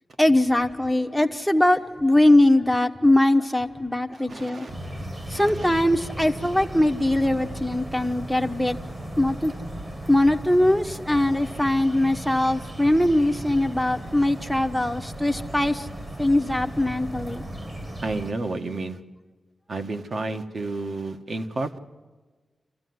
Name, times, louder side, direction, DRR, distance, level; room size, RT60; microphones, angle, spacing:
voice 1, 0.2-4.7 5.3-9.6 10.1-17.4, left 1 dB, ahead, 1.0 m, -21 dB
voice 2, 4.3-4.7 5.4-5.7 18.0-19.0 19.7-21.8, right 2 dB, 45° right, 1.4 m, -31 dB
sound 1, 4.7-18.3, right 1 dB, 30° right, 1.6 m, -36 dB
27.5 x 14.5 x 9.5 m
wide cardioid pair, 150°, 0 cm